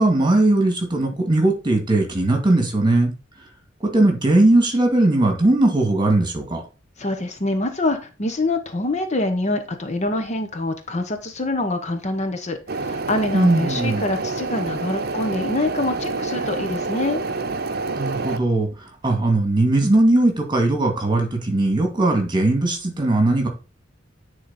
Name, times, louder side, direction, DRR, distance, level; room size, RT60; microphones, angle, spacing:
voice 1, 0.0-3.1 3.8-6.6 13.3-14.0 18.0-18.7 19.0-23.5, right 2 dB, 25° right, 2.2 m, -19 dB
voice 2, 7.0-17.2, left 2 dB, 35° left, 0.9 m, -25 dB
sound 1, 12.7-18.4, right 3 dB, 55° right, 0.7 m, -27 dB
9.9 x 4.0 x 4.1 m
head